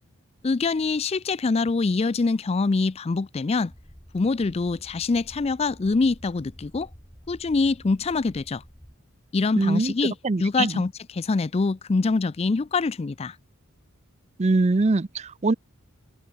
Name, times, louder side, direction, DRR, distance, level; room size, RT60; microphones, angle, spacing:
voice 1, 0.4-3.7 4.1-6.9 7.3-8.6 9.3-13.4, left 3 dB, 30° left, 0.4 m, -24 dB
sound 1, 3.7-8.9, equal, 10° left, 3.9 m, -49 dB
voice 2, 9.6-10.7 14.4-15.5, right 3 dB, 30° right, 0.5 m, -23 dB
head